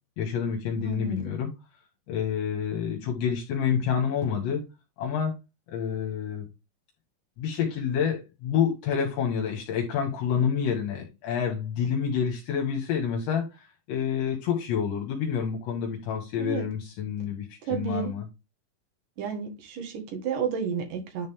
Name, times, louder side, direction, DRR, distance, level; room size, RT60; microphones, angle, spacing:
voice 1, 0.2-1.5 2.1-4.6 5.0-5.3 5.7-6.5 7.4-18.2, left 7 dB, 70° left, 3.7 m, -28 dB
voice 2, 0.8-1.2 16.4-16.7 17.6-18.1 19.2-21.3, right 6 dB, 55° right, 2.7 m, -31 dB
10.5 x 4.0 x 3.6 m
omnidirectional pair, 5.6 m